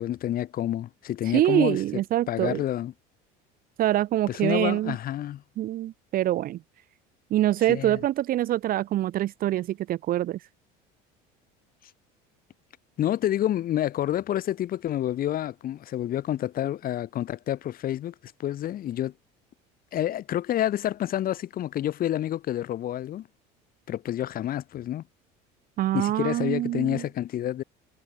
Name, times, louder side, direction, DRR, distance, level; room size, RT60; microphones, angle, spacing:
voice 1, 0.0-2.0 2.3-2.9 4.3-5.4 7.7-8.0 13.0-19.1 19.9-23.3 23.9-25.0 25.9-27.6, left 12 dB, 50° left, 5.2 m, -28 dB
voice 2, 1.3-2.6 3.8-5.0 5.6-6.6 7.3-10.4 25.8-27.0, right 13 dB, 45° right, 1.0 m, -25 dB
cardioid pair, 120°, 20 cm